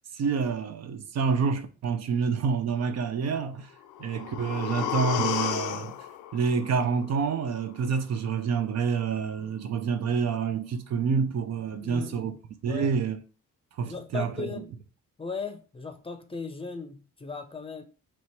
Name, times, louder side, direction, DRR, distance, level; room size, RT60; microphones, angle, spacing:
voice 1, 0.1-3.7 4.0-5.9 6.3-12.3 12.6-13.2 13.8-14.5, right 5 dB, 60° right, 0.6 m, -28 dB
sound 1, 3.8-7.8 8.1-8.2, left 10 dB, 85° left, 0.5 m, -33 dB
voice 2, 11.8-12.4 12.6-13.0 13.9-14.7 15.2-17.8, left 5 dB, 20° left, 0.6 m, -37 dB
3.0 x 3.0 x 4.3 m
cardioid pair, 90°, 30 cm